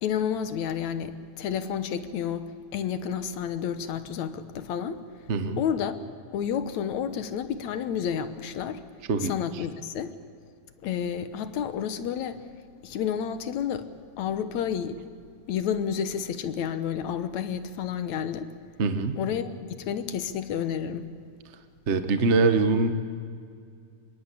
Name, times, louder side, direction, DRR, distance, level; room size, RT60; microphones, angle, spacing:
voice 1, 0.0-5.0 5.6-6.0 6.3-8.8 9.2-10.1 10.8-12.4 12.8-13.9 14.2-15.0 15.5-18.5 19.2-21.1, left 8 dB, 70° left, 11 dB, 2.2 m, -30 dB
voice 2, 5.3-5.6 9.1-9.3 18.8-19.2 21.9-22.9, right 3 dB, 65° right, 8 dB, 0.6 m, -23 dB
25.5 x 22.5 x 8.5 m, 2.2 s
omnidirectional pair, 3.7 m